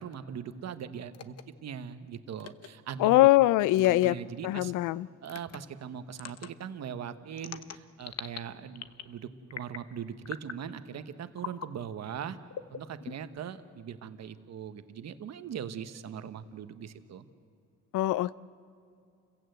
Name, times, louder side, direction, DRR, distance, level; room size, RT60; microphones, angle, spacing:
voice 1, 0.0-1.3 1.6-3.3 3.8-4.7 5.2-12.4 12.7-17.3, right 8 dB, 60° right, 10 dB, 1.2 m, -40 dB
sound 1, 1.1-1.4 2.4-2.7 3.8-4.1 5.3-5.6 6.1-6.5 7.4-8.4 8.8-9.1 9.5-9.9 10.3-10.6 11.4-11.7 12.5-13.4, left 9 dB, 55° left, 1.0 m, -41 dB
voice 2, 3.0-4.1 4.4-5.1 17.9-18.3, left 17 dB, 90° left, 20 dB, 0.5 m, -22 dB
29.0 x 16.0 x 8.0 m, 2.4 s
cardioid pair, 90°, 30 cm